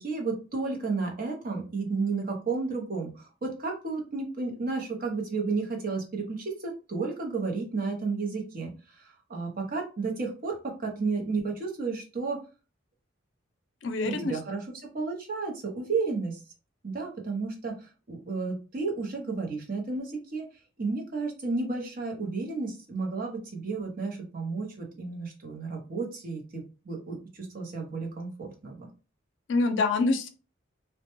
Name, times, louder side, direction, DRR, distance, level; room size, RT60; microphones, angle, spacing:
voice 1, 0.0-12.4 14.0-14.6 14.9-16.4 16.8-20.5 20.8-28.9, right 4 dB, 45° right, 1 dB, 0.7 m, -32 dB
voice 2, 13.8-14.3 29.5-30.3, left 3 dB, 70° left, 7 dB, 0.4 m, -25 dB
2.2 x 2.1 x 2.9 m, 0.33 s
head